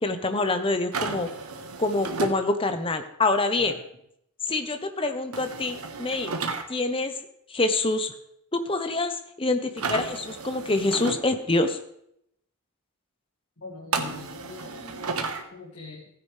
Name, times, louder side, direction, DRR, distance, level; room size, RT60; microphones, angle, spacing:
voice 1, 0.0-1.3 1.8-3.7 4.5-6.3 6.7-7.1 7.5-8.1 8.5-11.8, left 2 dB, 25° left, 8 dB, 0.9 m, -26 dB
sound 1, 0.9-2.4 5.3-6.6 9.8-11.2 13.9-15.4, right 4 dB, 90° right, 1.3 m, -32 dB
voice 2, 13.6-15.1 15.5-16.1, left 3 dB, 65° left, -6 dB, 2.6 m, -42 dB
15.5 x 9.9 x 3.3 m, 0.74 s
head